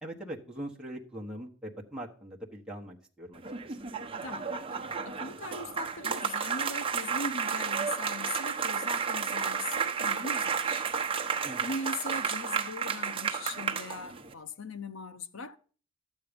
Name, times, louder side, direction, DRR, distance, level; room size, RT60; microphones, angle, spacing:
voice 1, 0.0-3.8 11.4-11.6, right 1 dB, 5° right, 1.3 m, -42 dB
sound 1, 3.3-14.3, right 6 dB, 25° right, 1.0 m, -32 dB
voice 2, 4.2-10.9 11.6-15.6, left 3 dB, 70° left, 0.8 m, -40 dB
12.0 x 8.3 x 5.2 m
head